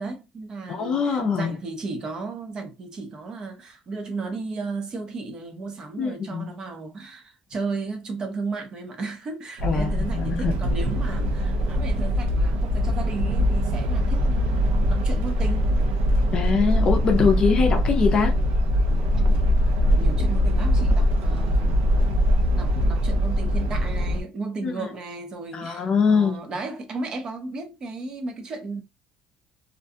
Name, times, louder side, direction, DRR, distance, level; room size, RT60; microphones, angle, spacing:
voice 1, 0.0-15.8 19.8-22.1 22.5-28.8, right 3 dB, 30° right, 0.6 m, -34 dB
voice 2, 0.7-1.6 6.0-6.5 9.6-10.5 16.3-18.3 24.6-24.8 25.5-26.4, left 5 dB, 35° left, 0.5 m, -23 dB
sound 1, 9.6-24.2, equal, 75° right, 0.7 m, -22 dB
2.5 x 2.2 x 2.6 m
cardioid pair, 140°, 2 cm